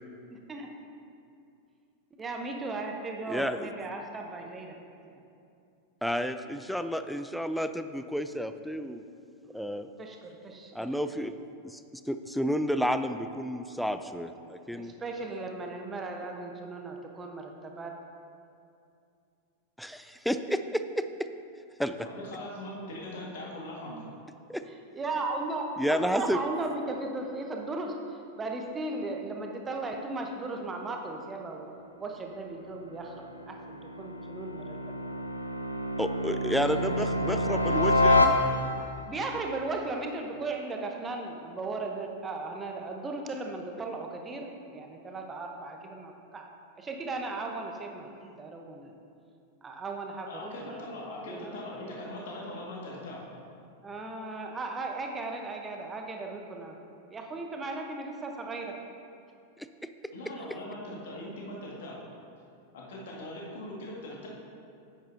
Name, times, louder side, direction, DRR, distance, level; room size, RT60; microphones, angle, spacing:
voice 1, 0.3-0.7 2.2-4.7 5.1-5.2 10.0-10.9 14.4-17.9 24.9-31.7 32.0-34.8 38.8-46.5 46.8-48.9 49.6-50.8 51.3-51.5 53.8-56.8 57.1-58.7, right 3 dB, 20° right, 2 dB, 0.9 m, -36 dB
voice 2, 3.3-3.7 6.0-9.0 9.5-9.9 10.7-11.3 11.6-11.8 12.1-14.9 19.8-21.1 21.8-22.1 24.5-24.6 25.8-26.4 36.0-38.4 59.6-59.7, equal, ahead, 9 dB, 0.3 m, -31 dB
voice 3, 22.0-24.0 36.5-37.8 50.3-53.2 60.1-62.0 62.7-64.3, left 1 dB, 55° left, -3 dB, 1.9 m, -41 dB
sound 1, 32.6-39.0, left 2 dB, 85° left, 0.5 m, -28 dB
10.0 x 8.7 x 2.7 m, 2.5 s
figure-of-eight pair, 90°, 0 cm